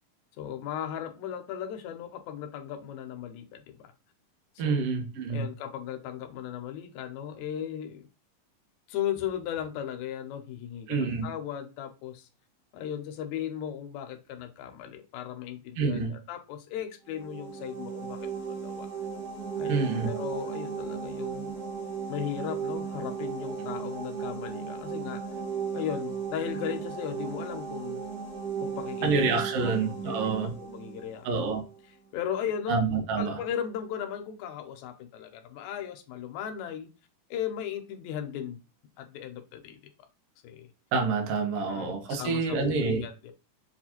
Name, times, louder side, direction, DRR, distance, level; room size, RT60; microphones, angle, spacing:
voice 1, 0.4-3.9 4.5-4.9 5.3-8.1 8.9-12.3 12.7-18.9 19.6-21.5 22.1-25.2 25.7-28.0 28.6-29.3 29.6-31.3 32.1-32.8 33.2-36.9 37.3-38.6 39.0-39.8 40.4-40.7 41.7-43.3, left 9 dB, 85° left, 1.6 m, -36 dB
voice 2, 4.6-5.4 10.9-11.2 15.8-16.1 19.7-20.1 29.0-30.5 31.2-31.6 32.7-33.4 40.9-43.0, right 4 dB, 80° right, 1.3 m, -27 dB
sound 1, 17.1-31.7, right 6 dB, 50° right, 1.1 m, -36 dB
6.3 x 2.4 x 2.9 m
omnidirectional pair, 4.0 m